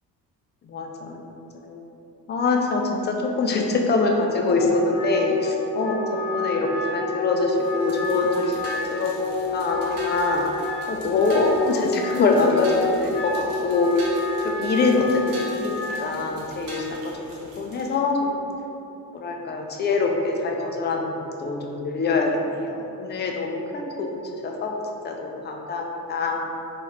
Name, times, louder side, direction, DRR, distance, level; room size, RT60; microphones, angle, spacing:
voice 1, 0.6-1.2 1.5-1.8 2.3-6.0 6.3-10.4 10.9-14.0 14.4-17.3 17.6-18.4 19.1-21.1 21.4-24.8 25.0-26.4, left 3 dB, 20° left, 1 dB, 0.4 m, -24 dB
Wind instrument woodwind instrument, 4.4-16.1, left 3 dB, 40° left, 0.8 m, -29 dB
sound 1, 7.5-18.0, right 1 dB, 60° right, 1.0 m, -43 dB
4.0 x 2.4 x 3.2 m, 2.8 s
figure-of-eight pair, 50°, 49 cm